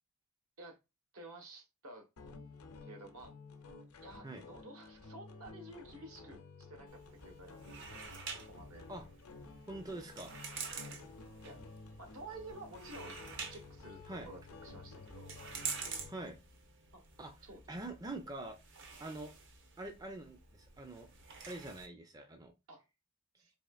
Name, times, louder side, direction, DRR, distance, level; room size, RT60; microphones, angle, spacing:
voice 1, 1.1-2.1 2.8-3.3 4.0-8.0 8.4-8.9 10.8-11.0 11.4-11.6 12.0-13.2 13.5-15.3 16.9-17.0 17.4-17.6 22.7-22.8 23.4-23.5, right 2 dB, 75° right, 1.1 m, -52 dB
sound 1, 2.2-16.3, left 3 dB, 85° left, 0.7 m, -53 dB
sound 2, 6.9-21.9, right 5 dB, 55° right, 0.8 m, -48 dB
voice 2, 9.7-10.3 14.1-14.3 16.1-16.4 17.2-17.3 17.7-18.6 19.0-19.3 19.8-21.1 21.5-22.5, right 2 dB, 15° right, 0.4 m, -44 dB
4.2 x 3.2 x 2.3 m
head